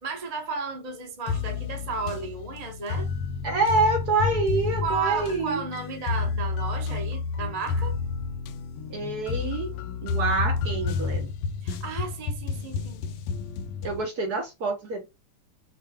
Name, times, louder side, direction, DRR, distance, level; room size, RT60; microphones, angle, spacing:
voice 1, 0.0-3.1 4.8-8.0 11.6-13.0, right 4 dB, 30° right, 0.7 m, -33 dB
sound 1, 1.3-14.1, left 5 dB, 80° left, 1.4 m, -30 dB
voice 2, 3.4-5.6 8.9-9.7 10.0-11.3 13.8-15.1, right 3 dB, 55° right, 1.2 m, -26 dB
6.6 x 2.3 x 3.4 m
omnidirectional pair, 2.4 m